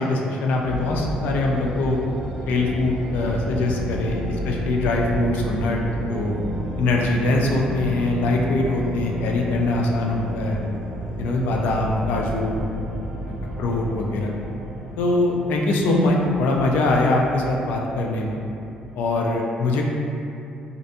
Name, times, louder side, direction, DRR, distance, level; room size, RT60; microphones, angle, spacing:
voice 1, 0.0-2.0 2.5-5.8 6.1-6.3 6.8-10.6 11.2-12.6 13.3-14.3 15.0-18.4 19.0-19.9, left 2 dB, 80° left, 0 dB, 0.3 m, -22 dB
sound 1, 0.6-18.9, equal, 85° right, 0.5 m, -32 dB
2.5 x 2.1 x 2.6 m, 2.6 s
cardioid pair, 160°, 3 cm